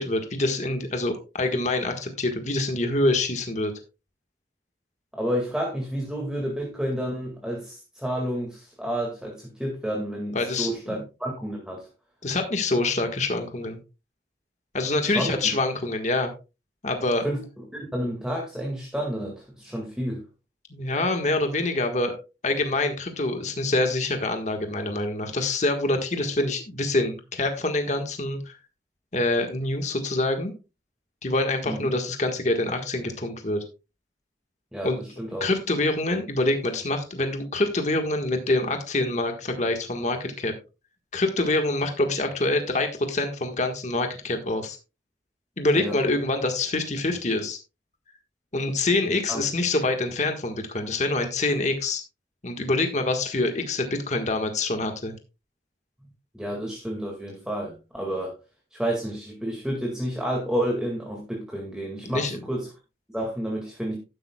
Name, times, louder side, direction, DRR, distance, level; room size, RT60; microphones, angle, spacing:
voice 1, 0.0-3.7 10.3-11.0 12.2-13.8 14.7-16.3 16.8-17.2 20.7-22.1 22.4-28.6 29.1-30.5 31.2-33.6 34.8-35.0 35.4-40.5 41.1-44.8 45.6-47.6 48.5-52.0 52.4-55.1 62.0-62.4, left 2 dB, 40° left, 5 dB, 1.5 m, -25 dB
voice 2, 5.1-11.9 15.1-15.5 17.2-20.2 31.6-31.8 34.7-35.5 45.8-46.0 49.0-49.4 56.3-58.3 58.7-62.7 63.1-64.0, equal, 5° right, -1 dB, 2.0 m, -30 dB
12.0 x 10.5 x 2.3 m, 0.29 s
head